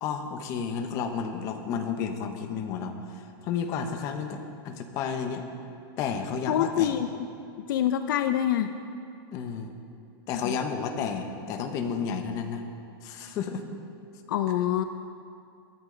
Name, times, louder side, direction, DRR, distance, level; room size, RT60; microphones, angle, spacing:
voice 1, 0.0-5.4 6.0-6.9 9.3-9.7 10.3-12.6 13.0-13.6, left 6 dB, 25° left, 5 dB, 1.1 m, -32 dB
voice 2, 6.5-7.1 7.7-8.7 10.4-10.6 14.3-14.8, left 11 dB, 60° left, 9 dB, 0.6 m, -25 dB
22.5 x 12.5 x 4.0 m, 2.5 s
supercardioid pair, 180°, 12 cm